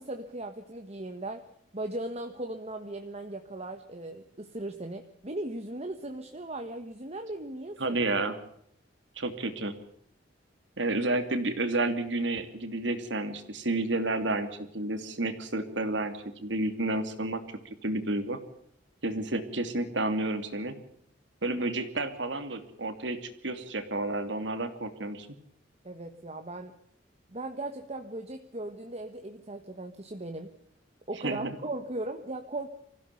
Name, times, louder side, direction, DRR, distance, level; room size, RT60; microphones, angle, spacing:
voice 1, 0.0-1.5 1.7-8.0 25.8-26.7 27.3-30.5 31.1-32.7, right 2 dB, 35° right, 6 dB, 1.5 m, -38 dB
voice 2, 7.8-8.4 9.2-9.7 10.8-17.4 17.8-18.4 19.0-20.8 21.4-25.4 31.2-31.6, right 2 dB, 85° right, 8 dB, 2.8 m, -31 dB
25.0 x 16.0 x 6.9 m, 0.71 s
head